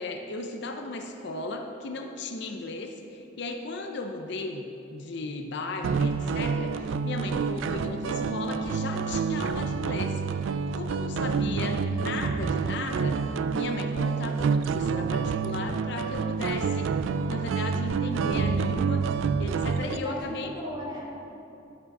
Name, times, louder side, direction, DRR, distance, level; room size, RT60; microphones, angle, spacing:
voice 1, 0.0-16.9 17.3-19.0 19.4-20.5, left 2 dB, 65° left, 5 dB, 0.6 m, -36 dB
sound 1, 5.8-20.0, right 5 dB, 85° right, 0.3 m, -28 dB
voice 2, 18.2-18.8 19.8-21.4, equal, 20° right, -5 dB, 1.9 m, -38 dB
11.0 x 5.3 x 5.3 m, 2.8 s
head